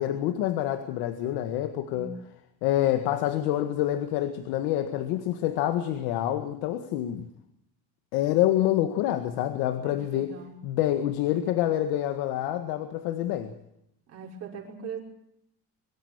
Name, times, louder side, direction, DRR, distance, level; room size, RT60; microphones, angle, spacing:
voice 1, 0.0-2.2 2.6-7.3 8.1-10.4 10.6-13.5, left 12 dB, 90° left, 1.9 m, -27 dB
voice 2, 9.8-10.5 14.1-15.0, right 6 dB, 40° right, 5.7 m, -40 dB
24.0 x 13.5 x 9.7 m
cardioid pair, 175°, 37 cm